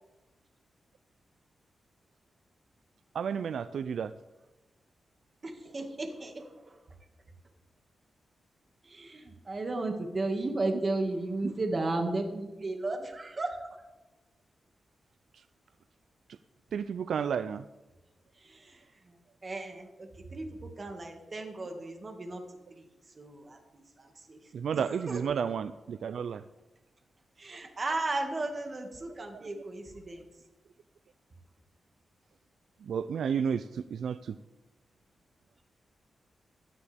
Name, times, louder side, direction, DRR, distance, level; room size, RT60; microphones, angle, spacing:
voice 1, 3.1-4.1 16.7-17.6 24.5-26.4 32.8-34.4, right 7 dB, 80° right, 13 dB, 0.4 m, -32 dB
voice 2, 5.4-6.8 8.8-13.6 18.3-24.5 25.0-25.2 27.4-30.3, right 2 dB, 35° right, 4 dB, 2.0 m, -35 dB
16.5 x 12.0 x 3.5 m, 1.1 s
wide cardioid pair, 110°, 0 cm